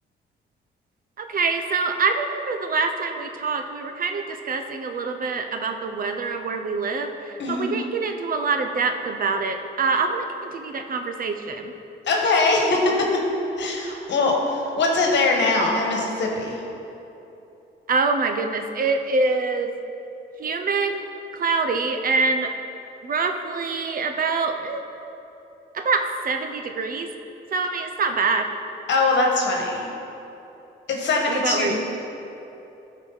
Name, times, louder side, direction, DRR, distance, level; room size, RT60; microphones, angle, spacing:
voice 1, 1.2-11.7 17.9-19.7 20.4-21.1 21.3-22.5 23.0-24.8 25.7-27.1 27.5-28.5 31.3-31.8, right 4 dB, 45° right, 6 dB, 0.7 m, -25 dB
voice 2, 7.4-7.8 12.0-13.2 13.6-16.6 28.9-29.9 30.9-31.8, left 3 dB, 65° left, 0 dB, 1.4 m, -22 dB
13.0 x 4.6 x 4.0 m, 3.0 s
cardioid pair, 90°, 20 cm